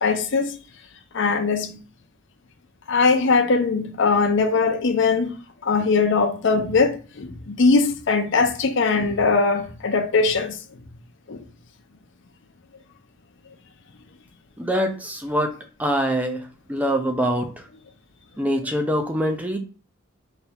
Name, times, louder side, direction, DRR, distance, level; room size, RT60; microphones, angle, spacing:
voice 1, 0.0-0.5 1.1-1.8 2.9-5.3 5.6-10.6 11.3-11.4, left 4 dB, 60° left, 0.6 m, -20 dB
voice 2, 14.6-15.5 15.8-16.4 16.7-17.5 18.4-19.6, equal, 5° right, 0.5 m, -24 dB
4.3 x 2.8 x 3.5 m
head